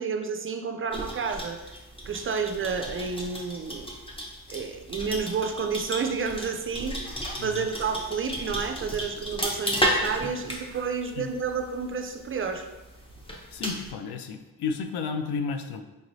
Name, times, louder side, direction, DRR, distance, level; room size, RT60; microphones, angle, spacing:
voice 1, 0.0-1.6 2.1-3.9 4.5-7.1 7.4-12.7, right 5 dB, 35° right, 6 dB, 0.4 m, -30 dB
sound 1, 0.9-13.9, equal, 15° left, 0.7 m, -34 dB
voice 2, 13.5-15.8, left 5 dB, 75° left, 8 dB, 0.5 m, -32 dB
5.2 x 3.0 x 2.6 m, 1.1 s
cardioid pair, 90°, 39 cm